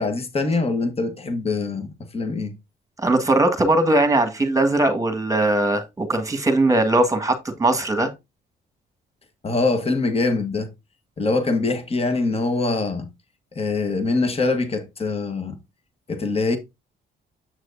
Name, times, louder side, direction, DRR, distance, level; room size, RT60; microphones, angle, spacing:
voice 1, 0.0-2.5 9.4-10.7 11.2-13.1 13.5-15.6 16.1-16.6, left 3 dB, 30° left, 1.4 m, -23 dB
voice 2, 3.0-8.1, right 2 dB, 15° right, 1.6 m, -20 dB
7.7 x 6.3 x 2.7 m
cardioid pair, 90°, 20 cm